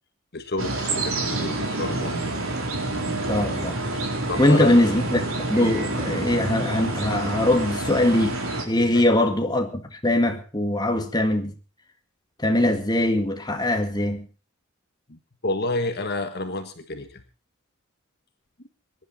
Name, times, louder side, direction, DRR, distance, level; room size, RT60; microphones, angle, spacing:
voice 1, 0.3-2.2 4.3-4.7 8.9-9.1 15.1-17.2, left 2 dB, 50° left, 1.6 m, -30 dB
sound 1, 0.6-8.6, right 2 dB, 80° right, 4.3 m, -28 dB
voice 2, 3.3-3.8 4.4-8.4 8.7-11.5 12.4-14.3, left 1 dB, 20° left, 2.0 m, -22 dB
22.5 x 11.0 x 4.3 m
head